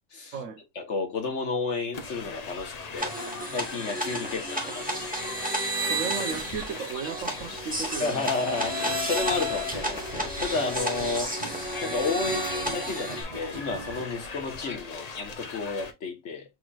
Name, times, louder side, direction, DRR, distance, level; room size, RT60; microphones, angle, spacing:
voice 1, 0.7-3.2 3.5-5.4 8.0-16.4, left 4 dB, 65° left, 1.5 m, -32 dB
sound 1, 1.9-15.9, left 4 dB, 40° left, 0.7 m, -40 dB
sound 2, 3.0-13.2, equal, 5° right, 1.2 m, -32 dB
voice 2, 5.8-8.3, right 6 dB, 80° right, 1.2 m, -35 dB
sound 3, 8.5-14.0, right 4 dB, 55° right, 0.4 m, -44 dB
6.4 x 3.1 x 2.4 m
omnidirectional pair, 1.3 m